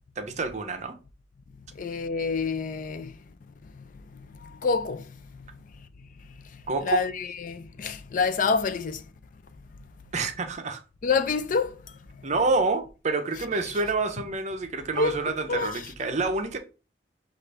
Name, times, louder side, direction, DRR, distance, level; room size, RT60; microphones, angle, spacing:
voice 1, 0.2-1.0 6.7-7.1 10.1-10.8 12.2-16.6, right 3 dB, 40° right, 0.6 m, -28 dB
voice 2, 1.7-3.2 3.7-3.8 4.1-5.1 6.8-9.0 11.0-11.8 15.0-15.2 15.5-15.8, left 5 dB, 45° left, 0.4 m, -27 dB
6.4 x 2.5 x 3.3 m
head